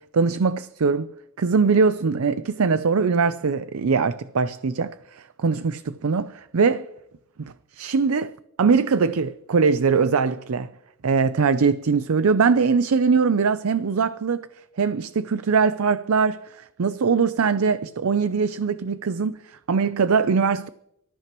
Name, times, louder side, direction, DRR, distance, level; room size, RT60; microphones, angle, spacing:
voice 1, 0.1-1.1 1.4-6.9 7.4-8.3 8.6-10.7 11.0-14.5 14.8-20.7, right 5 dB, 80° right, 0.5 m, -22 dB
24.5 x 14.0 x 3.0 m
head